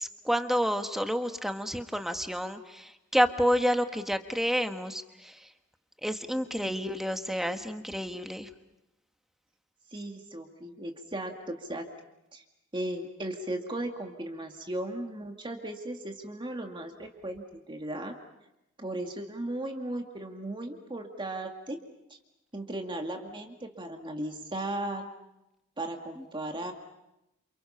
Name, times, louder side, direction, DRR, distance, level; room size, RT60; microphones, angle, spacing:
voice 1, 0.0-5.5 6.0-8.5 26.2-26.3, equal, ahead, 7 dB, 1.3 m, -29 dB
voice 2, 9.9-11.9 12.3-12.4 12.7-18.1 18.8-21.8 22.1-22.2 22.5-25.1 25.8-26.7, right 1 dB, 20° right, 3 dB, 2.2 m, -36 dB
28.5 x 28.5 x 5.7 m, 0.90 s
head